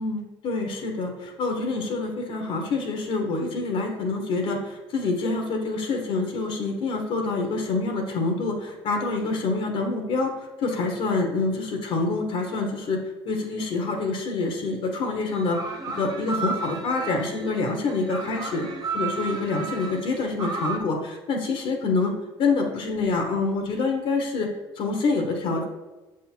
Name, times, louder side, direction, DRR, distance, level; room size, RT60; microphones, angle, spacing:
voice 1, 0.0-10.3 10.6-13.0 13.2-15.6 15.9-18.7 18.9-22.1 22.4-24.5 24.8-25.6, left 3 dB, 60° left, 3 dB, 1.1 m, -26 dB
sound 1, 15.1-20.8, right 4 dB, 40° right, 1.0 m, -33 dB
6.7 x 3.7 x 4.5 m, 1.1 s
cardioid pair, 100°, 11 cm